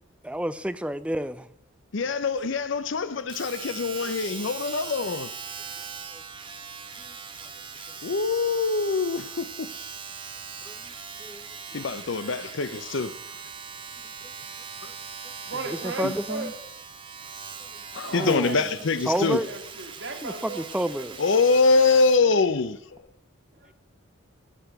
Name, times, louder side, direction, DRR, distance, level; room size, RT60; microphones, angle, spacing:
voice 1, 0.2-1.5 4.0-4.1 6.1-6.2 7.0-7.1 7.4-7.5 10.6-10.9 11.2-11.8 14.2-14.3 15.2-15.3 15.6-16.5 17.6-17.7 18.1-18.7 19.1-19.5 20.2-21.2, right 1 dB, 5° right, 0.4 m, -30 dB
voice 2, 1.9-5.3 8.0-9.7 11.7-13.1 14.8-14.9 16.0-16.1 17.9-19.4 21.2-22.8, left 4 dB, 65° left, 0.6 m, -24 dB
Domestic sounds home sounds, 3.3-22.3 23.0-23.1, right 6 dB, 25° right, 0.9 m, -40 dB
voice 3, 15.5-16.5 18.0-21.4 23.6-23.7, right 3 dB, 55° right, 2.1 m, -37 dB
15.5 x 6.7 x 5.9 m
head